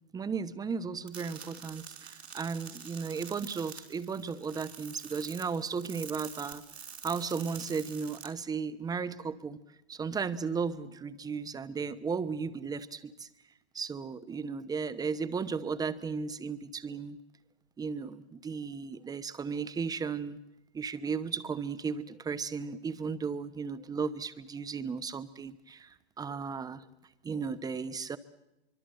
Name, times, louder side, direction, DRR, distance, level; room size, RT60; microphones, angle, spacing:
voice 1, 0.1-6.6 7.0-9.6 9.9-13.3 13.7-17.2 17.8-20.4 20.7-26.8 27.2-28.2, right 5 dB, 10° right, 1.0 m, -35 dB
sound 1, 1.1-8.3, right 7 dB, 80° right, 4.1 m, -47 dB
24.0 x 24.0 x 7.9 m
hypercardioid pair, 115°, 32 cm